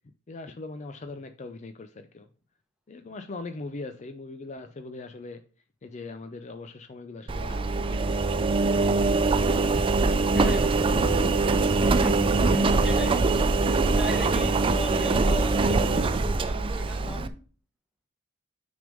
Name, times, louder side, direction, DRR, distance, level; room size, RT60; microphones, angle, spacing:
voice 1, 0.3-2.3 2.9-5.4 5.8-9.4 10.7-11.7 17.0-17.3, left 3 dB, 35° left, 8 dB, 0.5 m, -41 dB
Engine, 7.3-17.3, right 3 dB, 25° right, 0.3 m, -23 dB
voice 2, 10.3-10.9 12.0-13.2 13.9-17.3, equal, 5° right, 3 dB, 1.0 m, -35 dB
6.2 x 3.5 x 5.2 m, 0.38 s
head